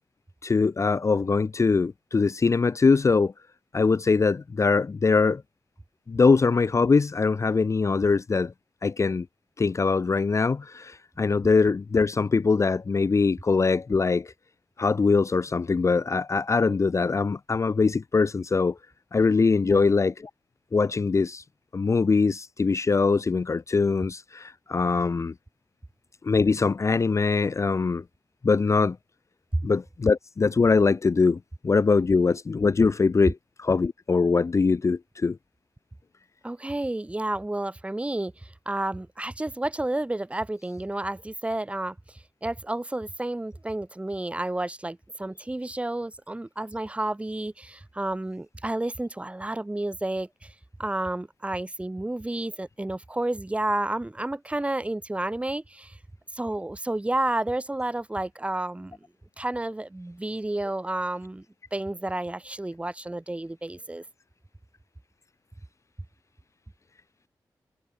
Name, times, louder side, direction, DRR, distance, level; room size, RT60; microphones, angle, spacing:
voice 1, 0.4-3.3 3.7-5.4 6.1-8.5 8.8-9.2 9.6-14.3 14.8-18.7 19.1-20.1 20.7-21.4 21.7-25.3 26.2-28.0 28.4-29.0 29.6-31.4 31.6-35.4, left 4 dB, 40° left, 0.7 m, -22 dB
voice 2, 36.4-50.5 50.8-56.0 56.3-59.0 59.4-61.4 61.7-64.0, right 1 dB, 15° right, 3.2 m, -31 dB
wide cardioid pair, 145°, 8 cm